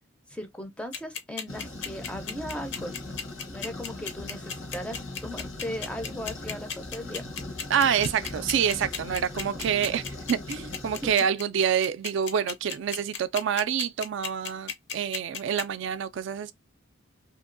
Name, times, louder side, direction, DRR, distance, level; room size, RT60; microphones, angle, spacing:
voice 1, 0.3-3.0 3.5-7.2 11.0-11.1, equal, 5° left, 0.4 m, -37 dB
sound 1, 0.9-15.6, left 7 dB, 60° left, 0.6 m, -34 dB
sound 2, 1.5-11.1, left 2 dB, 85° left, 1.3 m, -39 dB
voice 2, 7.7-16.5, right 8 dB, 65° right, 0.3 m, -27 dB
2.9 x 2.7 x 2.5 m
head